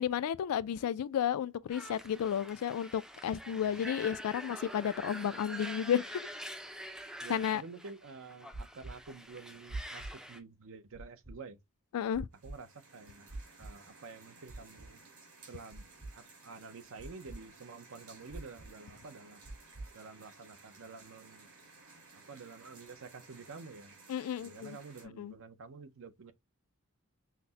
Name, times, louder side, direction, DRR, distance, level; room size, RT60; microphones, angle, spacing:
voice 1, 0.0-6.3 7.3-7.6 11.9-12.3 24.1-24.8 25.2-25.3, left 9 dB, 85° left, 0.3 m, -32 dB
sound 1, 1.7-10.4, equal, 5° right, 0.4 m, -46 dB
voice 2, 7.2-11.6 12.4-13.3 13.6-15.0 15.5-15.9 16.1-19.4 19.9-21.5 22.1-23.9 24.4-26.3, right 4 dB, 60° right, 0.6 m, -49 dB
sound 2, 8.5-8.9 9.7-10.1 10.9-11.3 12.1-12.5 13.3-13.7 14.5-14.9 15.7-16.1 17.0-17.4 18.3-18.7 19.5-19.9, right 2 dB, 40° right, 1.0 m, -43 dB
sound 3, 12.3-25.1, right 3 dB, 80° right, 2.5 m, -57 dB
5.7 x 2.1 x 2.7 m
head